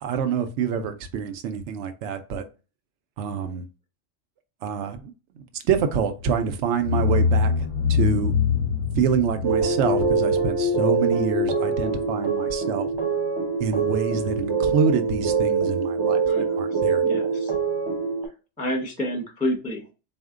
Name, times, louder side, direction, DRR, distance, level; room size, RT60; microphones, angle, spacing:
voice 1, 0.0-2.4 3.2-3.7 4.6-8.3 9.0-12.9 13.6-17.3, right 7 dB, 75° right, 0.9 m, -26 dB
sound 1, 6.2-6.4 6.8-11.4, left 6 dB, 50° left, 0.4 m, -24 dB
sound 2, 9.4-18.3, right 4 dB, 40° right, 0.4 m, -24 dB
voice 2, 16.2-17.5 18.6-19.9, equal, 10° left, 0.8 m, -30 dB
4.3 x 2.1 x 3.6 m
omnidirectional pair, 1.3 m